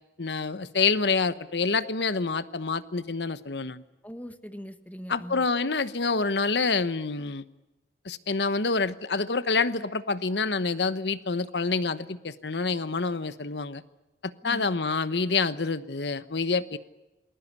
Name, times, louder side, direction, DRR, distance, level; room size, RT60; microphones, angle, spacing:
voice 1, 0.2-3.8 5.1-7.5 8.0-13.8 14.2-16.8, left 4 dB, 80° left, 14 dB, 1.1 m, -27 dB
voice 2, 4.0-5.4 14.4-14.7, equal, 10° left, 10 dB, 1.4 m, -41 dB
28.5 x 21.0 x 8.4 m, 1.0 s
head